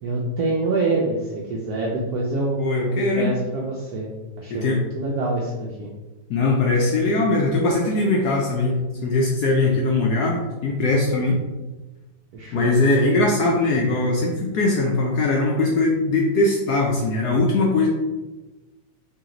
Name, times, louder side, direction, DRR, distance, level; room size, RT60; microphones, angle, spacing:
voice 1, 0.0-2.6 2.8-4.1 4.4-5.9 12.3-12.7, right 2 dB, 75° right, -2 dB, 0.8 m, -26 dB
voice 2, 2.6-3.3 4.5-4.8 6.3-11.4 12.5-17.9, left 2 dB, 75° left, -1 dB, 0.9 m, -21 dB
3.3 x 2.9 x 3.7 m, 1.1 s
omnidirectional pair, 2.2 m